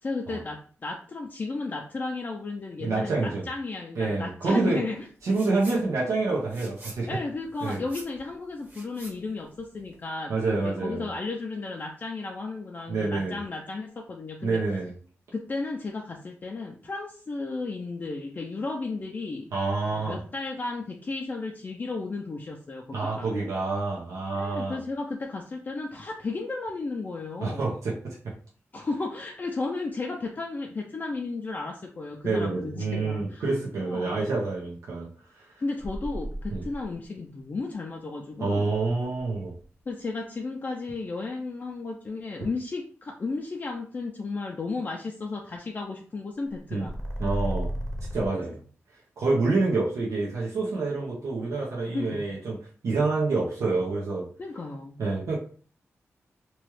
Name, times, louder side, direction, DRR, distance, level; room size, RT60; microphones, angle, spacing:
voice 1, 0.0-5.1 5.7-5.9 7.1-10.3 10.6-14.6 15.3-19.5 19.9-23.3 24.3-27.7 28.7-33.4 33.8-34.3 35.6-38.7 39.9-47.0 48.3-48.5 51.9-52.3 54.4-55.0, left 3 dB, 35° left, 1 dB, 0.4 m, -34 dB
voice 2, 2.8-3.5 4.0-4.8 5.2-7.1 7.6-7.8 10.3-11.1 12.9-13.4 14.4-14.9 19.5-20.2 22.9-24.8 27.4-28.2 32.2-35.1 35.3-35.5 36.5-36.6 38.4-39.5 46.7-46.9 47.2-47.7 48.1-48.6 49.2-52.6 52.8-54.3 55.0-55.4, right 3 dB, 90° right, -5 dB, 0.8 m, -27 dB
sound 1, 5.2-5.8 6.1-10.1, right 2 dB, 35° right, 1.0 m, -47 dB
sound 2, 35.8-37.0 38.7-39.6 46.6-48.3, equal, 5° left, 0.7 m, -33 dB
2.9 x 2.3 x 3.1 m, 0.43 s
wide cardioid pair, 105°, 5 cm